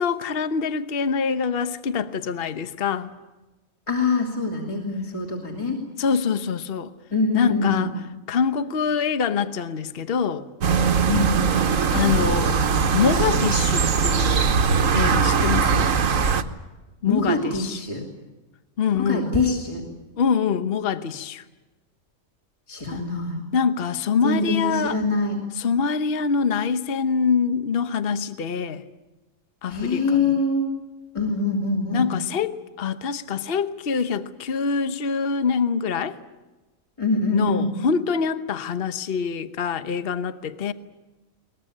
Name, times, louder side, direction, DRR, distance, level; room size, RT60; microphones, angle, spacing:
voice 1, 0.0-3.1 6.0-6.9 7.3-7.9 8.3-10.5 11.9-12.6 12.9-14.5 14.9-15.9 17.0-17.8 18.8-19.3 20.2-21.4 22.9-23.0 23.5-25.0 25.6-28.8 29.6-30.4 31.9-36.2 37.3-40.7, left 6 dB, 45° left, 1.1 m, -25 dB
voice 2, 3.9-5.8 7.1-7.9 11.1-11.4 17.0-18.0 18.9-19.8 22.7-23.4 24.2-25.4 29.7-30.7 31.1-32.1 37.0-37.8, left 3 dB, 20° left, 3.1 m, -24 dB
sound 1, 10.6-16.4, right 5 dB, 65° right, 1.5 m, -20 dB
22.5 x 20.5 x 9.9 m
omnidirectional pair, 1.5 m